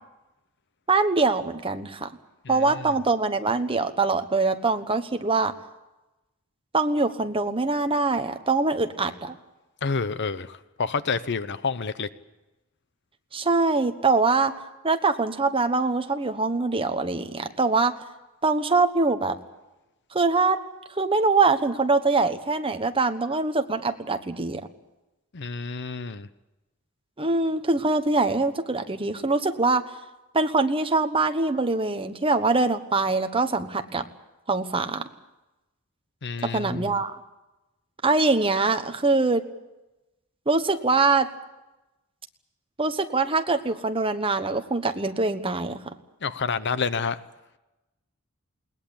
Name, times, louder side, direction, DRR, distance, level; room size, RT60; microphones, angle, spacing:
voice 1, 0.9-2.1 2.5-5.5 6.7-9.3 13.3-14.5 14.8-17.9 18.4-19.4 20.1-20.6 21.0-24.6 27.2-29.9 30.3-34.1 34.5-35.1 36.4-37.2 38.0-39.4 40.5-41.3 42.8-45.8, right 3 dB, 25° right, 7 dB, 1.2 m, -23 dB
voice 2, 2.4-2.9 9.8-12.1 25.3-26.3 36.2-37.0 46.2-47.2, left 5 dB, 50° left, 14 dB, 0.8 m, -29 dB
21.0 x 19.5 x 8.7 m, 1.0 s
head